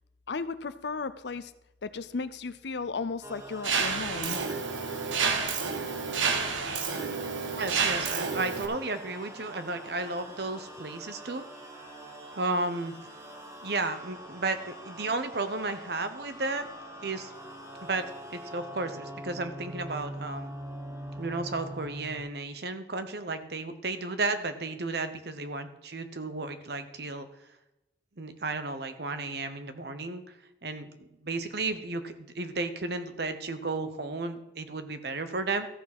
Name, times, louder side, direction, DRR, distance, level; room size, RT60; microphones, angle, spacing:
voice 1, 0.3-1.5 1.8-4.4, left 4 dB, 65° left, 14 dB, 0.6 m, -35 dB
sound 1, 3.2-22.2, right 1 dB, 15° right, 1.4 m, -44 dB
Mechanisms, 3.6-8.7, right 5 dB, 85° right, 1.1 m, -29 dB
voice 2, 7.6-11.5 12.3-12.9 13.6-16.7 17.0-17.3 17.8-18.0 18.3-20.5 21.2-27.3 28.2-30.2 30.6-35.7, right 3 dB, 55° right, 10 dB, 0.9 m, -33 dB
14.0 x 6.0 x 6.0 m, 0.93 s
head